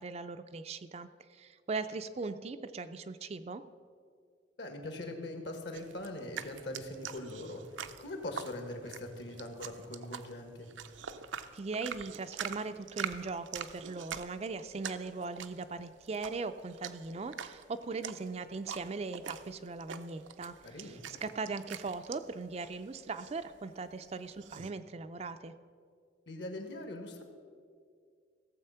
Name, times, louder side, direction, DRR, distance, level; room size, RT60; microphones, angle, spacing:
voice 1, 0.0-3.6 11.5-25.5, right 4 dB, 35° right, 10 dB, 0.4 m, -39 dB
voice 2, 4.6-10.7 20.6-21.0 26.3-27.2, left 1 dB, 65° left, 5 dB, 1.6 m, -42 dB
sound 1, 5.7-24.7, right 8 dB, 80° right, 0.6 m, -45 dB
16.0 x 7.4 x 5.6 m, 2.2 s
head